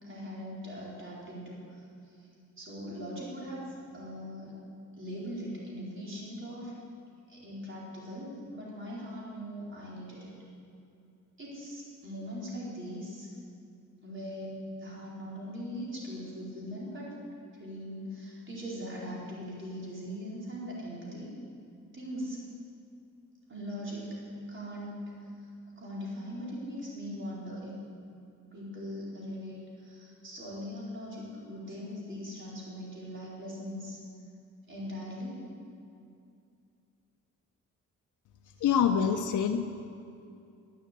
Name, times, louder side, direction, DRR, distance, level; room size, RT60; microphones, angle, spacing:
voice 1, 0.0-2.3 2.6-4.6 5.0-6.8 7.3-10.3 11.4-13.3 14.0-14.5 14.7-17.2 17.5-21.3 21.9-22.4 23.5-24.2 24.5-25.3 25.8-27.8 28.5-34.0 34.7-35.5 38.6-38.7, equal, 40° right, -5 dB, 4.4 m, -40 dB
voice 2, 38.6-39.9, left 7 dB, 75° left, 4 dB, 0.7 m, -26 dB
11.5 x 11.0 x 8.3 m, 2.5 s
cardioid pair, 115°, 31 cm